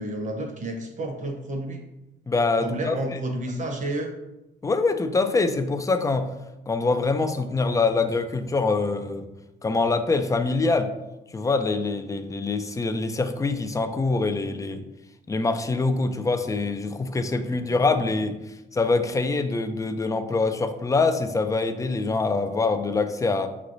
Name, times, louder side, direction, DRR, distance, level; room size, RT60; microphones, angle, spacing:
voice 1, 0.0-1.8 2.6-4.1, right 1 dB, 40° right, 3 dB, 0.9 m, -30 dB
voice 2, 2.3-3.2 4.6-6.3 6.7-9.3 9.6-10.9 11.3-14.9 15.3-23.5, left 3 dB, 15° left, 8 dB, 0.4 m, -24 dB
5.6 x 3.1 x 2.6 m, 0.95 s
cardioid pair, 90°, 20 cm